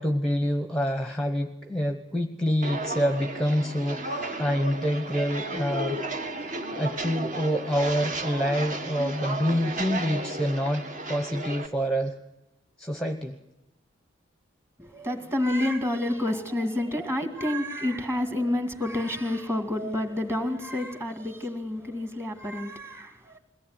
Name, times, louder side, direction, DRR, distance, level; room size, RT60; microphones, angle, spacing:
voice 1, 0.0-6.0 6.5-12.2 12.8-13.4, equal, 5° left, 1.0 m, -27 dB
Walk footsteps, 2.6-11.7, right 2 dB, 40° right, 1.7 m, -34 dB
voice 2, 14.8-23.4, left 1 dB, 15° right, 2.2 m, -29 dB
22.5 x 17.0 x 9.5 m
head